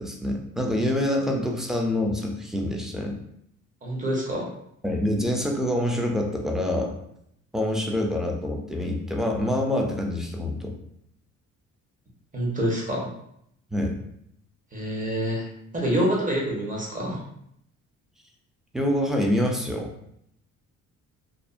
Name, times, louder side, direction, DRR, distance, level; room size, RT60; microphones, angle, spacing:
voice 1, 0.0-3.1 4.8-6.9 7.5-10.7 13.7-13.9 18.7-19.9, left 1 dB, ahead, 1 dB, 0.4 m, -26 dB
voice 2, 3.8-4.4 12.3-13.1 14.7-15.4 15.7-17.2, equal, 25° right, -3 dB, 0.9 m, -26 dB
2.5 x 2.1 x 2.4 m, 0.74 s
cardioid pair, 90°, 30 cm